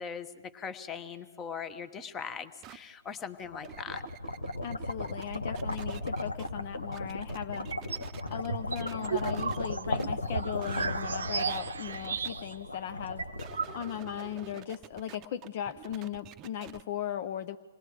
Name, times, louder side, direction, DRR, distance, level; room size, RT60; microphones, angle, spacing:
voice 1, 0.0-4.0, left 6 dB, 20° left, 12 dB, 1.1 m, -40 dB
sound 1, 2.6-2.8 3.4-6.5 6.9-8.5 8.8-9.6 10.0-10.1 10.6-10.9 11.4-12.3 13.3-16.8, right 11 dB, 25° right, 0.7 m, -48 dB
sound 2, 3.2-14.3, left 2 dB, 85° left, 1.0 m, -36 dB
voice 2, 4.6-7.7 8.3-13.2 13.7-17.6, left 10 dB, 45° left, 10 dB, 0.5 m, -37 dB
sound 3, 7.5-8.1 8.5-12.7 12.9-13.0 13.2-14.2, right 6 dB, 70° right, 0.7 m, -35 dB
27.0 x 19.5 x 4.9 m, 1.4 s
figure-of-eight pair, 120°, 0 cm